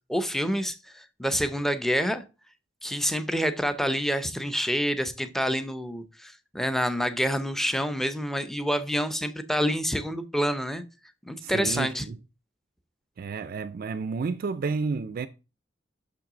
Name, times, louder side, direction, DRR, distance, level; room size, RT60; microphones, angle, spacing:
voice 1, 0.1-2.2 2.8-10.8 11.3-12.1, equal, ahead, 0.5 m, -27 dB
voice 2, 11.4-12.2 13.2-15.3, right 4 dB, 50° right, 0.3 m, -31 dB
6.0 x 5.9 x 3.7 m
head